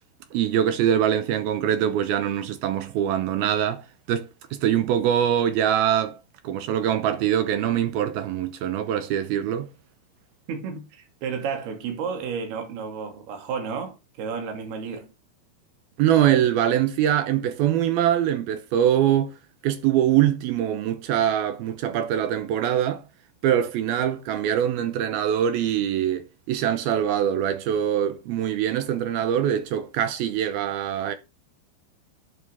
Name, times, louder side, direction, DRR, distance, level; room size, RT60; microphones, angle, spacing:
voice 1, 0.3-6.2 6.4-9.7 16.0-19.3 19.6-23.0 23.4-31.1, right 10 dB, 75° right, 2.2 m, -23 dB
voice 2, 10.5-15.1, right 6 dB, 60° right, 4.2 m, -32 dB
11.0 x 8.5 x 3.4 m
omnidirectional pair, 5.4 m